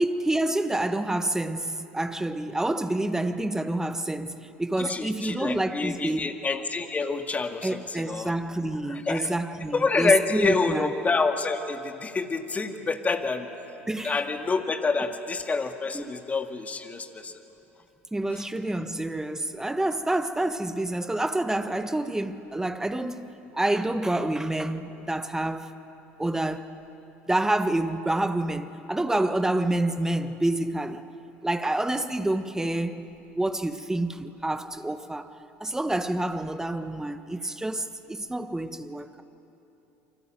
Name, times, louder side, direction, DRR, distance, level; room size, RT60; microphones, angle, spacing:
voice 1, 0.0-6.3 7.6-10.9 13.9-14.2 15.9-16.0 18.1-25.7 26.2-26.7 27.3-31.0 31.4-33.1 33.4-35.3 35.6-39.2, right 1 dB, 5° right, 1.3 m, -28 dB
voice 2, 4.8-8.3 8.9-9.3 9.7-13.5 14.0-17.3, left 4 dB, 20° left, 2.0 m, -27 dB
28.5 x 24.5 x 7.8 m
figure-of-eight pair, 70°, 7 cm